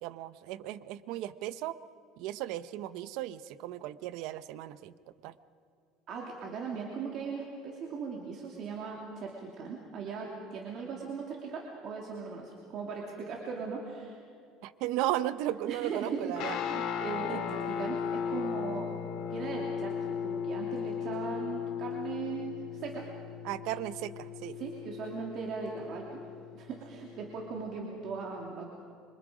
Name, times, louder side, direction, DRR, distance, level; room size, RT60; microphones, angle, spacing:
voice 1, 0.0-1.8 2.2-4.9 5.2-5.3 14.6-16.6 17.3-17.4 23.4-24.6, right 14 dB, 65° right, 14 dB, 0.8 m, -35 dB
voice 2, 6.1-14.2 15.7-19.0 19.2-23.1 24.6-26.2 26.5-28.7, right 5 dB, 45° right, -1 dB, 2.7 m, -39 dB
Guitar, 16.4-27.8, left 8 dB, 50° left, 2.4 m, -37 dB
26.5 x 25.5 x 5.1 m, 2.4 s
cardioid pair, 155°, 0 cm